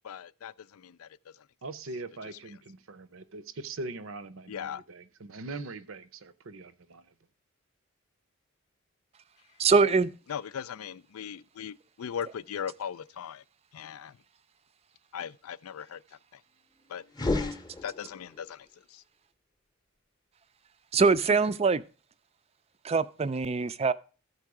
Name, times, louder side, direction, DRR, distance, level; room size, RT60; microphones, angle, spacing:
voice 1, 0.0-1.1 4.5-4.8 10.3-13.4 13.7-14.2 15.1-16.0 16.3-16.4 16.9-17.0 17.8-19.0, left 8 dB, 90° left, 0.4 m, -38 dB
voice 2, 1.6-7.1, right 3 dB, 70° right, 0.7 m, -41 dB
voice 3, 9.6-10.1 20.9-21.8 22.8-23.9, right 4 dB, 30° right, 0.3 m, -23 dB
sound 1, 17.1-18.4, left 2 dB, 20° left, 0.7 m, -31 dB
13.5 x 4.6 x 4.8 m
head